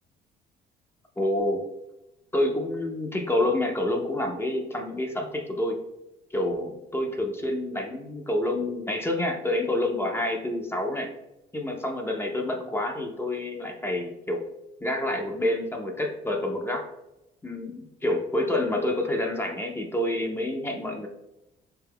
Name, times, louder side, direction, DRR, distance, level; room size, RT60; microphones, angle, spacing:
voice 1, 1.2-1.6 2.3-5.8 6.3-11.1 11.5-14.4 14.8-16.9 17.4-21.1, left 1 dB, 15° left, 2 dB, 0.4 m, -28 dB
4.1 x 2.2 x 3.4 m, 0.93 s
cardioid pair, 110°, 17 cm